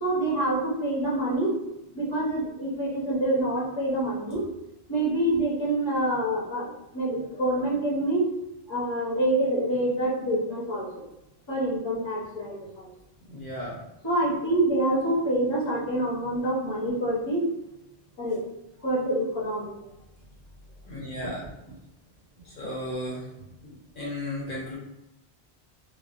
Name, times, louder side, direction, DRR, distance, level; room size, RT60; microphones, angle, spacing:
voice 1, 0.0-1.6 1.9-4.4 4.9-8.3 8.7-11.0 11.5-12.9 14.0-17.5 18.2-18.4 18.8-19.7, right 1 dB, 30° left, -5 dB, 0.7 m, -26 dB
voice 2, 13.3-13.8 20.9-21.4 22.4-23.3 23.6-24.8, left 1 dB, 60° left, -5 dB, 0.8 m, -35 dB
2.9 x 2.1 x 2.4 m, 0.88 s
omnidirectional pair, 1.1 m